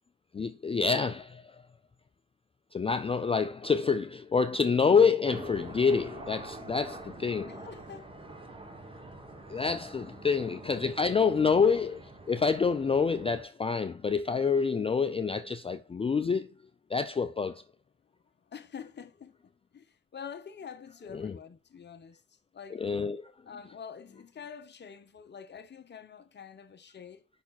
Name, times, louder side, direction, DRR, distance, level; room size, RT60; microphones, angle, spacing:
voice 1, 0.3-1.6 2.7-7.5 9.5-16.5 16.9-17.6 21.1-21.4 22.7-23.3, left 5 dB, 20° left, 0.4 m, -27 dB
sound 1, 5.2-13.4, right 2 dB, 15° right, 1.3 m, -46 dB
voice 2, 7.4-8.1 9.6-9.9 10.4-11.0 18.5-22.2 22.5-22.8 23.5-27.2, left 7 dB, 35° left, 1.0 m, -47 dB
5.7 x 4.2 x 4.1 m
cardioid pair, 90°, 30 cm